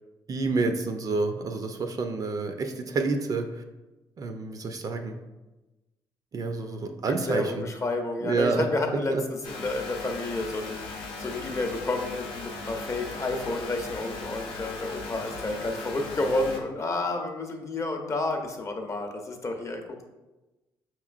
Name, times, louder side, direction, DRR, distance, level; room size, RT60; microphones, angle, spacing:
voice 1, 0.3-3.6 4.2-5.2 6.3-7.7 8.2-8.7 9.1-9.2, right 3 dB, 40° right, 6 dB, 0.5 m, -28 dB
voice 2, 7.3-20.1, left 2 dB, 35° left, 4 dB, 0.6 m, -30 dB
sound 1, 9.4-16.6, left 3 dB, 85° left, 0.7 m, -38 dB
5.1 x 3.0 x 2.4 m, 1.1 s
supercardioid pair, 75°, 9 cm